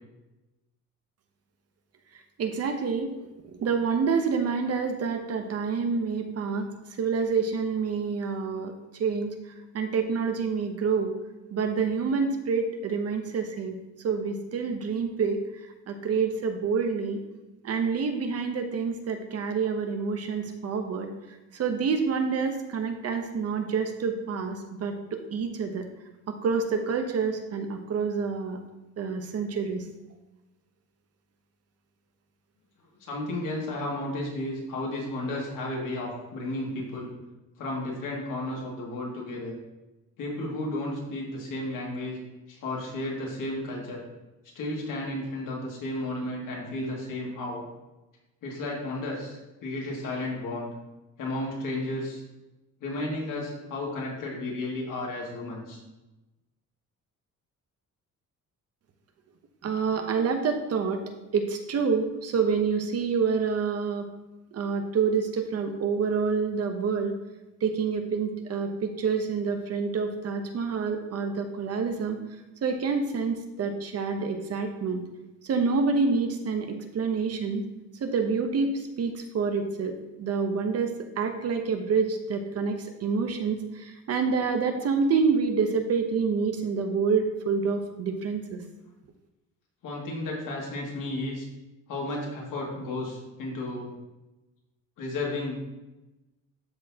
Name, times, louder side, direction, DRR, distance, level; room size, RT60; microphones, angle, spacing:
voice 1, 2.4-3.1 3.5-6.7 7.0-8.7 9.0-9.3 9.7-11.1 11.5-13.8 14.0-15.4 15.9-17.2 17.6-21.1 21.5-25.8 26.3-28.6 29.0-29.9 59.6-61.0 61.3-64.0 64.5-67.1 67.6-72.2 72.6-75.0 75.4-77.6 78.0-88.6, right 5 dB, 45° right, 5 dB, 0.8 m, -27 dB
voice 2, 33.0-37.1 37.6-39.5 40.2-42.2 42.5-44.0 44.5-47.6 48.4-50.7 51.2-52.2 52.8-55.8 89.8-91.5 91.9-93.9 95.0-95.5, left 1 dB, 70° left, -3 dB, 2.3 m, -33 dB
12.5 x 4.4 x 2.8 m, 1.0 s
cardioid pair, 150°, 33 cm